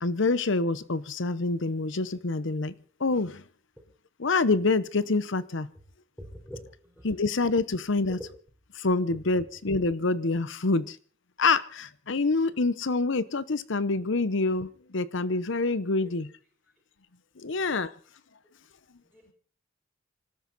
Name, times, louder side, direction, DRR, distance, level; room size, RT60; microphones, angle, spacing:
voice 1, 0.0-2.7 3.0-3.4 4.2-5.7 7.0-8.2 8.8-11.0 11.4-16.3 17.4-17.9, left 3 dB, 65° left, 16 dB, 0.9 m, -26 dB
voice 2, 6.5-7.1 16.0-16.1 19.1-19.3, equal, 5° left, -2 dB, 4.2 m, -46 dB
26.0 x 13.0 x 4.1 m, 0.43 s
head